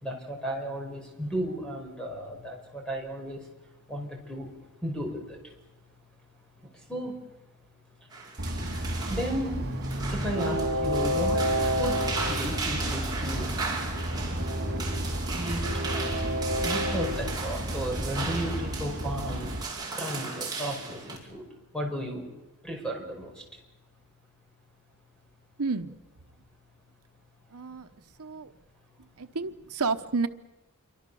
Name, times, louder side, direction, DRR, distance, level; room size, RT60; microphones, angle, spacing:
voice 1, 0.0-3.4 3.9-4.5 4.8-5.4 6.7-7.2 8.7-9.6 10.1-13.5 15.3-15.8 16.6-19.5 19.9-21.5 21.7-22.3 22.6-23.4, right 1 dB, 5° left, 1 dB, 5.3 m, -34 dB
sound 1, 8.1-21.2, right 4 dB, 20° right, 5.3 m, -36 dB
Train, 8.4-19.6, equal, 45° right, 2.2 m, -30 dB
voice 2, 25.6-26.0 27.5-27.9 28.2-28.5 29.2-30.3, right 4 dB, 85° right, 8 dB, 1.0 m, -30 dB
27.5 x 24.0 x 7.0 m, 1.1 s
head